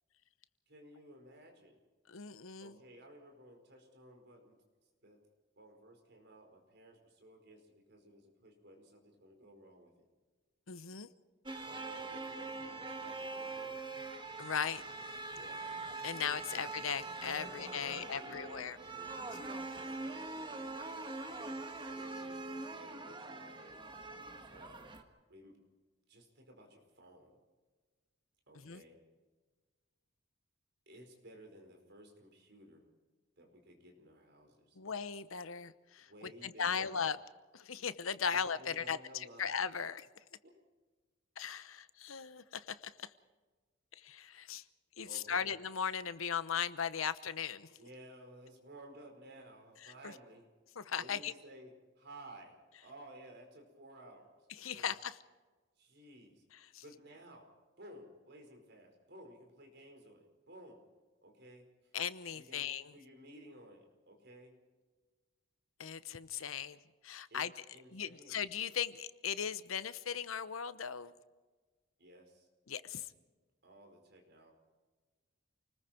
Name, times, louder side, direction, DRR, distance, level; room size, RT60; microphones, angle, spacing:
voice 1, 0.7-1.8 2.6-4.6 5.0-5.2 5.6-9.9 11.6-13.8 14.8-15.0 15.3-15.8 16.5-16.6 17.4-20.7 21.6-23.8 24.5-24.8 25.3-25.6 26.1-27.4 28.5-29.0 30.9-32.9 33.4-34.8 36.1-36.9 38.3-39.5 40.4-40.6 45.0-45.5 47.8-50.5 50.9-54.9 55.8-56.4 56.8-57.5 57.8-60.8 61.2-61.7 62.3-64.6 67.3-67.4 67.7-68.4 72.0-72.5 73.6-74.5, right 1 dB, 55° right, 3 dB, 4.9 m, -56 dB
voice 2, 2.1-2.7 10.7-11.1 14.4-14.8 16.0-18.8 28.5-28.8 34.8-37.2 37.5-40.1 41.4-43.1 43.9-44.6 45.0-47.7 49.8-50.1 50.8-51.3 54.6-55.2 56.5-56.8 61.9-62.9 65.8-66.8 67.0-67.5 67.9-71.1 72.7-73.1, left 7 dB, 85° left, 14 dB, 0.9 m, -38 dB
sound 1, 11.5-25.0, right 3 dB, 25° right, 1.5 m, -43 dB
29.0 x 20.0 x 4.5 m, 1.3 s
head